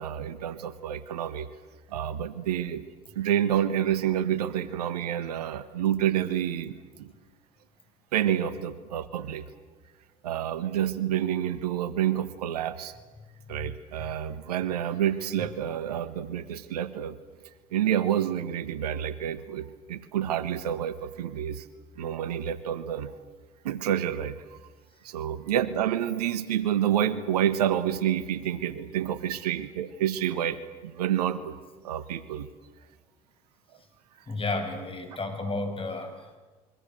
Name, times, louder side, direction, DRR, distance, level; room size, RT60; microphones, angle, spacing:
voice 1, 0.0-1.5 1.9-2.8 3.1-7.1 8.1-9.4 10.2-12.9 13.5-17.2 17.7-21.6 22.0-23.1 23.6-24.6 25.0-30.6 30.8-31.6 31.8-32.5, right 10 dB, 85° right, 14 dB, 1.5 m, -28 dB
voice 2, 34.3-36.4, left 2 dB, 25° left, 6 dB, 7.5 m, -32 dB
27.5 x 24.0 x 8.0 m, 1.3 s
hypercardioid pair, 65°, 20 cm